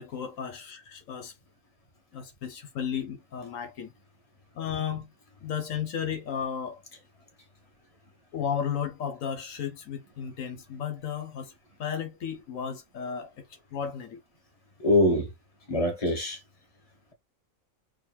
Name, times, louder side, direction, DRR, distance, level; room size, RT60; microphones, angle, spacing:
voice 1, 0.0-1.4 2.1-3.9 4.5-5.1 5.4-6.8 8.3-11.5 11.8-13.5 13.7-14.2, left 8 dB, 80° left, 1.2 m, -34 dB
voice 2, 14.8-15.3 15.7-16.4, left 1 dB, 25° left, 1.5 m, -23 dB
4.1 x 2.3 x 4.2 m
omnidirectional pair, 1.4 m